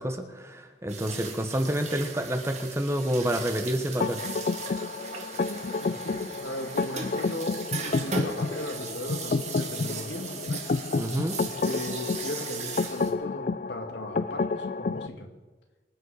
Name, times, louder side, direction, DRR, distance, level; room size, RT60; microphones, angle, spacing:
voice 1, 0.0-4.2 11.0-11.4, equal, 15° right, 6 dB, 1.2 m, -28 dB
sound 1, 0.9-13.1, right 5 dB, 40° right, 1.9 m, -38 dB
sound 2, 4.0-15.1, left 4 dB, 45° left, 0.4 m, -30 dB
voice 2, 5.4-10.6 11.4-15.3, left 1 dB, 80° left, 4 dB, 2.0 m, -37 dB
24.5 x 9.2 x 5.0 m, 1.2 s
head